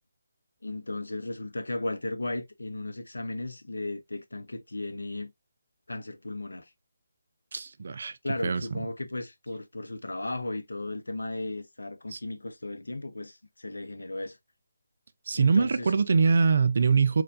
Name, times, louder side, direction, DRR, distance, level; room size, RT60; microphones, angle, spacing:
voice 1, 0.6-5.3 5.9-6.7 8.2-14.4 15.3-15.9, left 2 dB, 80° left, 0.6 m, -35 dB
voice 2, 7.5-8.2 8.4-8.7 12.1-12.2 15.3-17.2, right 5 dB, 55° right, 0.3 m, -23 dB
4.2 x 2.2 x 2.4 m
figure-of-eight pair, 150°, 0 cm